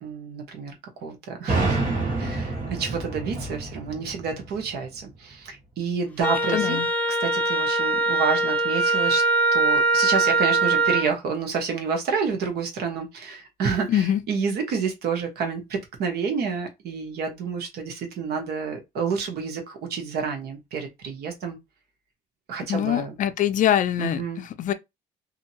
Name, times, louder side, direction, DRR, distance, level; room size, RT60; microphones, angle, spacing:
voice 1, 0.0-1.8 2.2-6.8 7.1-9.2 9.5-21.6 22.5-23.2 24.0-24.4, right 5 dB, 70° right, 1.1 m, -29 dB
sound 1, 1.5-5.1, right 3 dB, 50° right, 1.3 m, -28 dB
Wind instrument woodwind instrument, 6.2-11.1, right 3 dB, 10° left, 0.8 m, -22 dB
voice 2, 6.5-6.9 13.9-14.2 22.7-24.7, left 11 dB, 50° left, 0.4 m, -24 dB
2.7 x 2.6 x 2.7 m
cardioid pair, 110°, 17 cm